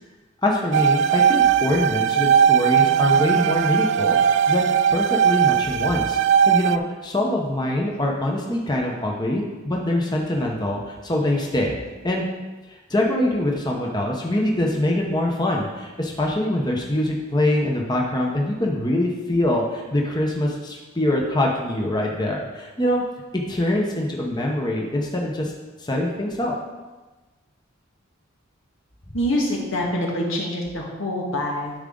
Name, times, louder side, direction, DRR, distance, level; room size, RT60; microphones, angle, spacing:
voice 1, 0.4-11.8 12.0-12.3 12.9-23.0 23.3-25.5 25.8-26.6, left 1 dB, 20° left, -1 dB, 1.0 m, -24 dB
sound 1, 0.7-6.8, right 8 dB, 65° right, 0.3 m, -19 dB
voice 2, 29.1-31.7, left 1 dB, 80° left, -1 dB, 1.8 m, -25 dB
12.0 x 4.9 x 3.9 m, 1.2 s
head